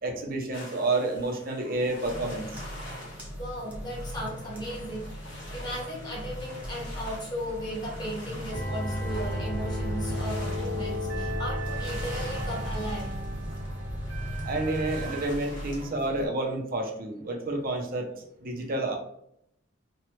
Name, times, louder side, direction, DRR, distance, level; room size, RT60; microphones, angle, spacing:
voice 1, 0.0-2.6 14.4-18.1 18.4-18.9, right 2 dB, 50° right, 3 dB, 0.6 m, -29 dB
sound 1, 0.5-15.9, equal, 85° left, 1.0 m, -46 dB
sound 2, 2.0-16.3, equal, 10° right, 0.6 m, -40 dB
voice 2, 3.0-13.1 15.8-15.9, equal, 25° left, -4 dB, 1.0 m, -36 dB
sound 3, 8.5-15.3, equal, 80° right, 1.0 m, -33 dB
3.0 x 2.2 x 3.0 m, 0.74 s
head